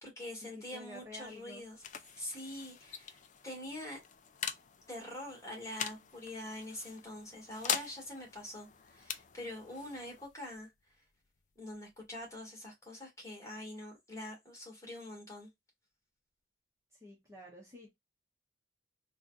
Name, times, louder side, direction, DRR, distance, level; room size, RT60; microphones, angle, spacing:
voice 1, 0.0-1.8 2.2-4.0 4.9-10.7 11.6-15.5, left 1 dB, 15° left, 2.0 m, -45 dB
voice 2, 0.7-1.6 16.9-18.0, left 1 dB, 15° right, 1.0 m, -50 dB
sound 1, 1.0-12.4, left 8 dB, 40° left, 0.4 m, -44 dB
4.2 x 2.4 x 2.5 m
head